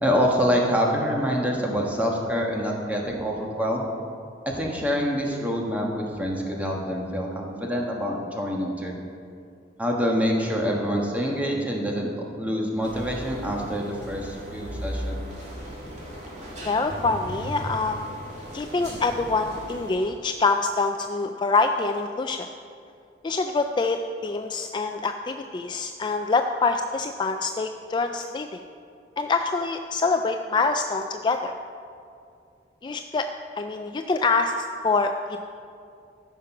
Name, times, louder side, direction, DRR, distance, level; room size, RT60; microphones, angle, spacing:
voice 1, 0.0-3.9 4.4-8.9 9.8-12.1 12.3-15.2, equal, 10° right, -1 dB, 1.4 m, -26 dB
sound 1, 12.8-20.0, equal, 40° right, 2.5 m, -37 dB
voice 2, 16.6-18.1 18.5-22.5 23.2-28.6 29.2-31.5 32.8-33.3 33.6-35.5, left 3 dB, 25° left, 6 dB, 0.3 m, -25 dB
14.0 x 5.9 x 5.9 m, 2.5 s
head